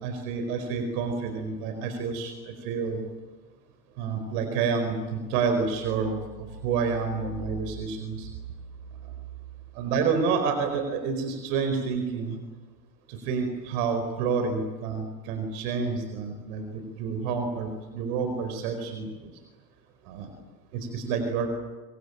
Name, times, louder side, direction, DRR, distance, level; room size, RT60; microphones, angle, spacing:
voice 1, 0.0-3.0 4.0-8.3 9.7-12.4 13.1-19.1 20.1-20.3 20.9-21.5, right 5 dB, 65° right, 6 dB, 4.7 m, -29 dB
25.5 x 24.0 x 9.0 m, 1.2 s
hypercardioid pair, 75°, 48 cm